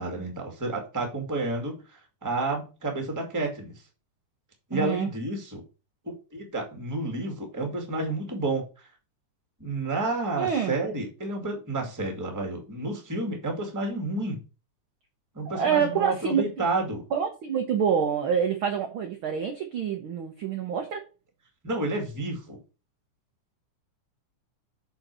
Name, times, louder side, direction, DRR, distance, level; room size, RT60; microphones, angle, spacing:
voice 1, 0.0-1.8 2.2-3.7 4.7-5.6 6.0-8.6 9.6-14.4 15.3-17.0 21.6-22.6, right 2 dB, 10° right, 1.2 m, -30 dB
voice 2, 4.7-5.1 10.4-10.7 15.5-16.4 17.1-21.0, right 7 dB, 70° right, 1.2 m, -26 dB
6.4 x 4.3 x 6.0 m
omnidirectional pair, 3.6 m